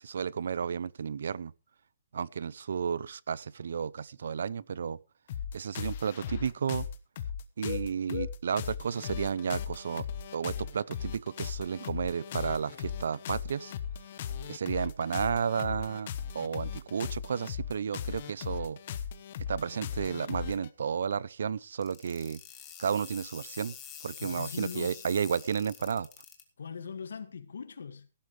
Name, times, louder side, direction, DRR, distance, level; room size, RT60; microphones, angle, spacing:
voice 1, 0.0-1.5 2.1-5.0 5.5-6.9 7.6-10.1 10.3-13.7 14.5-18.8 19.5-22.4 22.8-23.7 24.0-26.1, right 7 dB, 60° right, 0.6 m, -32 dB
sound 1, 5.3-20.7, left 8 dB, 30° left, 1.1 m, -38 dB
sound 2, 21.8-26.4, left 9 dB, 10° left, 1.7 m, -46 dB
voice 2, 24.2-25.0 26.6-28.1, left 6 dB, 75° left, 1.9 m, -40 dB
16.5 x 11.5 x 3.3 m
hypercardioid pair, 180°, 0 cm